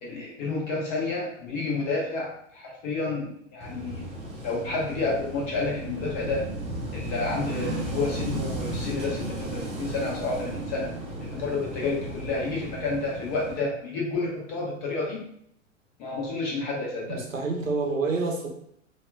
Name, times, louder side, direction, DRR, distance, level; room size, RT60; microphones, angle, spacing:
voice 1, 0.0-4.0 4.4-6.4 6.9-10.9 11.2-15.2 16.0-17.2, left 3 dB, 35° left, -3 dB, 1.2 m, -30 dB
Wind / Waves surf, 3.6-13.6, right 1 dB, 15° right, 0.7 m, -34 dB
voice 2, 17.1-18.5, right 3 dB, 80° right, 0 dB, 0.9 m, -27 dB
4.2 x 2.4 x 2.2 m, 0.69 s
figure-of-eight pair, 100°, 39 cm